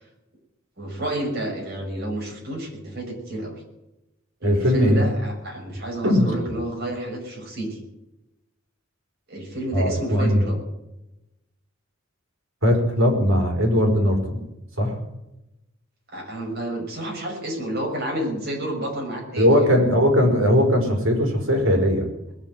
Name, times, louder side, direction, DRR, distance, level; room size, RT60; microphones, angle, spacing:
voice 1, 0.8-3.6 4.4-7.8 9.3-10.6 16.1-19.7, right 1 dB, 55° right, -1 dB, 6.5 m, -30 dB
voice 2, 4.4-5.0 6.0-6.3 9.7-10.4 12.6-14.4 14.8-14.9 19.4-22.1, equal, 85° right, 2 dB, 4.9 m, -19 dB
20.5 x 7.1 x 9.2 m, 0.92 s
head